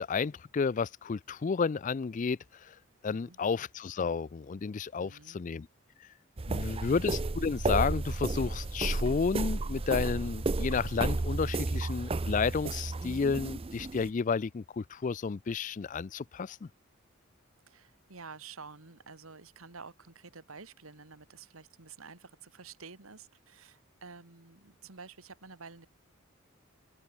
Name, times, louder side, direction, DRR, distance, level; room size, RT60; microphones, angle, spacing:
voice 1, 0.0-2.7 3.0-5.7 6.5-16.7, left 5 dB, 35° left, 0.4 m, -31 dB
voice 2, 3.1-3.4 5.0-5.4 6.4-6.8 11.6-11.7 17.7-25.9, right 4 dB, 85° right, 2.1 m, -50 dB
sound 1, 6.4-14.1, right 2 dB, 25° right, 0.5 m, -32 dB
open air
head